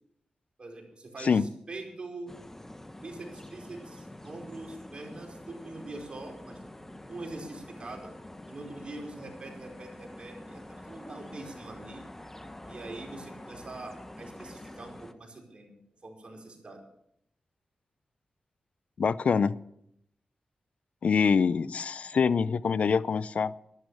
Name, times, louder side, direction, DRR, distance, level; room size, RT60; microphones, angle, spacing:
voice 1, 0.6-2.3 3.0-8.1 8.5-12.0 12.7-15.8 16.0-16.8, right 2 dB, 45° right, 0 dB, 4.8 m, -43 dB
sound 1, 2.3-15.1, left 1 dB, 15° left, 1.2 m, -46 dB
voice 2, 19.0-19.5 21.0-23.5, left 6 dB, 65° left, 17 dB, 0.5 m, -25 dB
12.5 x 12.0 x 6.4 m, 0.76 s
cardioid pair, 65°, 2 cm